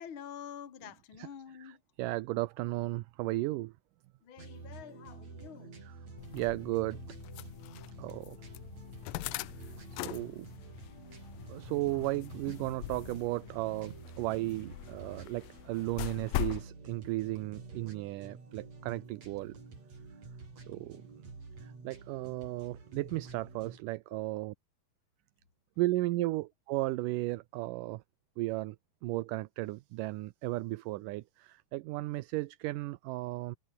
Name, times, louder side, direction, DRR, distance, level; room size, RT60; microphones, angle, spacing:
voice 1, 0.0-1.8 4.2-5.7 26.2-26.3, left 8 dB, 40° left, 2.8 m, -47 dB
voice 2, 1.6-3.7 5.8-6.0 6.3-7.0 8.0-8.4 9.9-10.5 11.5-19.5 20.7-21.1 21.6-24.5 25.8-28.0 28.4-28.8 29.0-33.6, right 19 dB, 75° right, 2.1 m, -35 dB
sound 1, 4.4-23.8, right 4 dB, 45° right, 6.9 m, -49 dB
sound 2, 6.2-16.7, left 19 dB, 80° left, 2.3 m, -42 dB
omnidirectional pair, 4.2 m